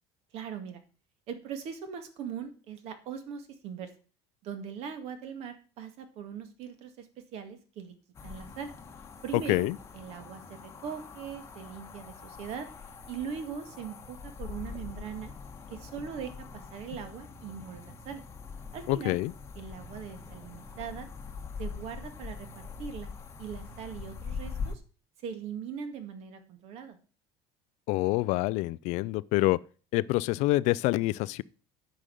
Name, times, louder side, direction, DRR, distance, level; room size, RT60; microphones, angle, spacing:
voice 1, 0.3-0.8 1.3-3.9 4.4-7.1 7.3-7.9 8.2-8.7 9.2-9.7 9.9-12.7 13.1-15.3 15.7-18.2 18.7-19.2 19.6-21.1 21.6-23.1 23.4-24.8 25.2-27.0, right 7 dB, 50° right, 1.9 m, -40 dB
sound 1, 8.1-24.7, left 5 dB, 20° left, 1.2 m, -43 dB
voice 2, 18.9-19.3 27.9-29.6 29.9-31.4, left 19 dB, 60° left, 0.4 m, -26 dB
10.0 x 5.3 x 7.7 m
cardioid pair, 160°, 14 cm